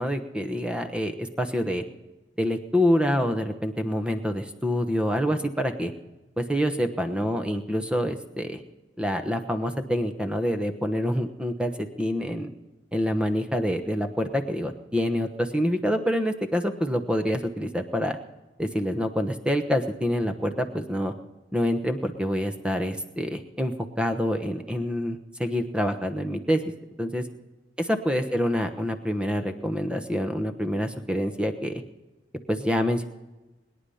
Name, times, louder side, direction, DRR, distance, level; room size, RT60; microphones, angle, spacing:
voice 1, 0.0-1.8 2.4-5.9 6.4-8.6 9.0-12.5 12.9-18.2 18.6-21.1 21.5-26.6 27.0-27.2 27.8-31.8 32.5-33.0, equal, 5° right, 6 dB, 1.0 m, -26 dB
21.5 x 10.0 x 5.6 m, 1.1 s
head